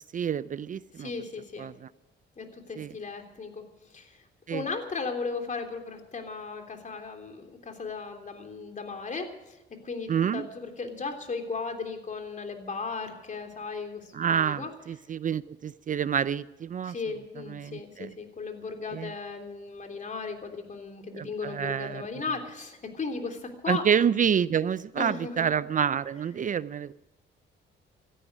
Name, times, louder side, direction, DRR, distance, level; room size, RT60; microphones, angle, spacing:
voice 1, 0.1-1.1 1.6-1.9 2.8-2.9 4.5-4.6 10.1-10.5 14.1-16.9 17.5-18.1 18.9-19.1 21.1-22.0 23.7-26.9, right 8 dB, 40° right, 17 dB, 0.5 m, -28 dB
voice 2, 1.0-1.7 2.4-3.6 3.9-4.2 4.5-9.6 9.8-14.7 16.8-23.8 25.0-25.5, left 4 dB, 40° left, 4 dB, 3.3 m, -36 dB
17.0 x 13.5 x 6.3 m, 0.99 s
cardioid pair, 90°, 20 cm